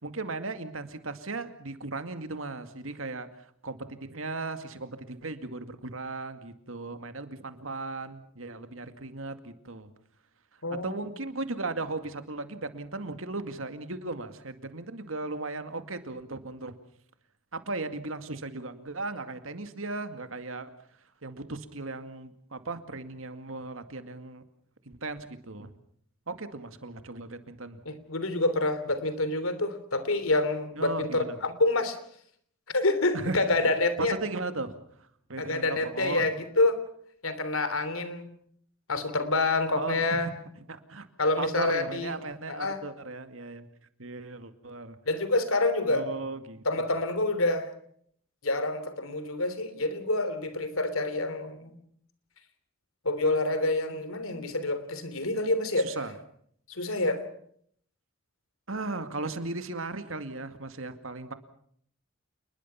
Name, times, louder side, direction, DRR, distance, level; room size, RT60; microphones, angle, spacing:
voice 1, 0.0-3.3 3.6-9.9 10.8-16.8 17.5-20.7 21.2-24.4 24.9-25.7 26.3-27.8 30.8-31.4 33.1-34.8 35.3-36.3 39.7-40.0 40.7-41.1 41.4-43.7 44.0-45.0 45.9-46.6 55.8-56.1 58.7-61.3, right 3 dB, 75° right, 9 dB, 2.2 m, -36 dB
voice 2, 10.6-11.0 27.8-32.0 32.7-34.2 35.4-36.8 37.2-38.3 38.9-40.3 41.2-42.1 42.5-42.8 45.0-46.1 46.6-47.7 48.4-51.7 53.0-56.0 56.7-57.2, left 2 dB, 85° left, 12 dB, 3.2 m, -27 dB
29.0 x 21.0 x 5.8 m, 0.64 s
head